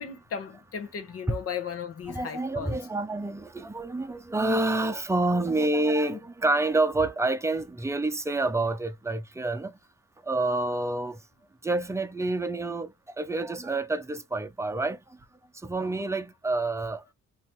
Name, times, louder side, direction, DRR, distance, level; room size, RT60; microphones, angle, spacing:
voice 1, 0.0-2.8 6.1-6.2, left 7 dB, 50° left, 1.3 m, -36 dB
voice 2, 2.1-9.8 10.2-11.2 11.6-15.0 15.6-17.1, right 2 dB, 10° right, 0.8 m, -28 dB
3.1 x 2.9 x 3.2 m
cardioid pair, 90°, 30 cm